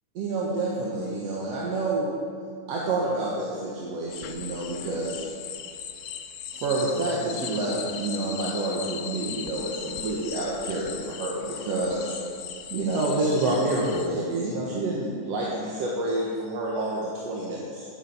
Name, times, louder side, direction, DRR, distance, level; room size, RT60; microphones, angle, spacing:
voice 1, 0.2-2.1 2.7-5.2 6.5-12.2 12.7-17.9, right 2 dB, 60° right, -5 dB, 2.3 m, -28 dB
sound 1, 4.1-14.1, left 8 dB, 90° left, 2.2 m, -38 dB
11.5 x 9.1 x 5.9 m, 2.2 s
omnidirectional pair, 3.6 m